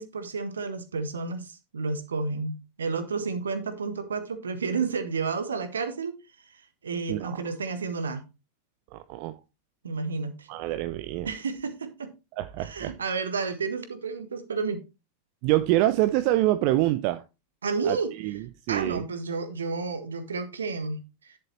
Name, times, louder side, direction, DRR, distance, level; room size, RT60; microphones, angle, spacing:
voice 1, 0.0-6.1 6.8-8.2 9.8-10.5 11.2-12.1 12.6-14.8 17.6-18.1 18.7-21.4, right 4 dB, 70° right, 10 dB, 1.5 m, -31 dB
voice 2, 7.1-7.4 8.9-9.3 10.5-11.3 12.4-12.9 15.4-17.2 17.8-19.0, right 15 dB, 45° right, 11 dB, 0.6 m, -26 dB
10.5 x 7.7 x 3.1 m, 0.27 s
figure-of-eight pair, 90°, 0 cm